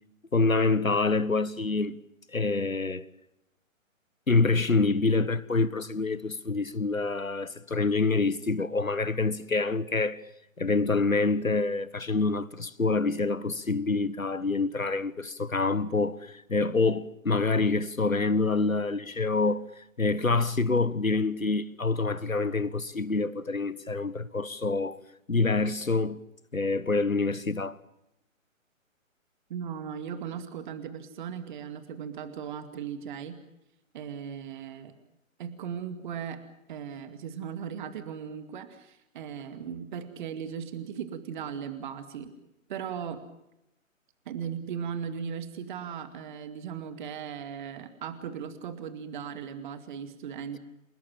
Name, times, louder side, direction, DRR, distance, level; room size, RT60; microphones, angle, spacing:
voice 1, 0.3-2.0 2.3-3.1 4.3-10.2 10.6-25.0 25.3-26.2 26.5-27.8, left 3 dB, 85° left, 1.4 m, -26 dB
voice 2, 29.5-33.4 33.9-34.9 35.4-36.4 36.7-42.3 42.7-43.2 44.3-50.6, right 7 dB, 35° right, 2.3 m, -37 dB
29.0 x 18.5 x 7.6 m
figure-of-eight pair, 135°, 40 cm